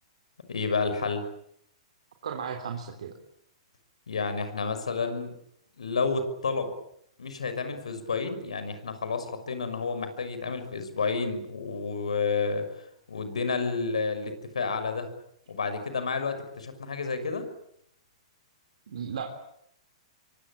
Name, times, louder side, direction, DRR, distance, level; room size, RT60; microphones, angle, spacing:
voice 1, 0.5-1.3 4.1-5.3 5.8-6.7 7.2-15.1 15.5-17.5, left 4 dB, 80° left, 9 dB, 6.0 m, -30 dB
voice 2, 2.2-3.1 18.9-19.3, right 7 dB, 70° right, 3 dB, 3.7 m, -35 dB
27.0 x 24.0 x 8.8 m, 0.74 s
hypercardioid pair, 120°, 3 cm